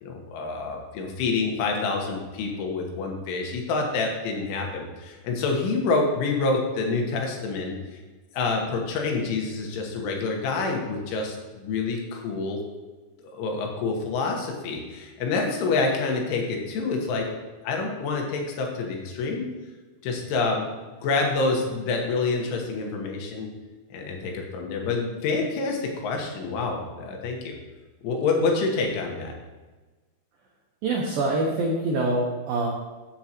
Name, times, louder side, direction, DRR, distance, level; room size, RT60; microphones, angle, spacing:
voice 1, 0.0-7.8 8.3-12.6 13.3-17.3 17.6-19.5 20.0-20.6 21.0-23.5 23.9-27.5 28.0-29.3, left 3 dB, 75° left, 1 dB, 3.6 m, -27 dB
voice 2, 30.8-32.7, right 2 dB, 90° right, -2 dB, 2.0 m, -25 dB
14.0 x 7.2 x 3.0 m, 1.3 s
omnidirectional pair, 5.7 m